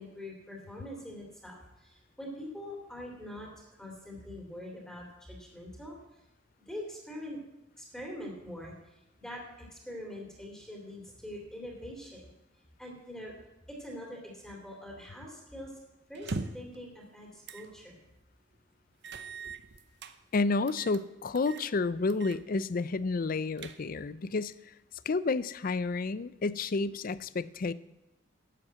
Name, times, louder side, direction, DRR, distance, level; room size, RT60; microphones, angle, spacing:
voice 1, 0.0-3.5 3.8-6.0 6.7-7.4 7.8-12.3 12.8-13.3 13.7-15.7 16.1-18.0, left 1 dB, 5° left, -1 dB, 2.7 m, -44 dB
sound 1, 16.2-16.8 17.5-17.7 18.1-18.2 19.0-20.2 20.7-21.0 21.4-21.7 22.1-22.4 22.7-22.8 23.3-24.1, right 3 dB, 60° right, 0.8 m, -40 dB
voice 2, 20.3-24.7 25.1-27.7, left 3 dB, 50° left, 17 dB, 0.5 m, -30 dB
12.0 x 7.9 x 7.5 m, 0.91 s
head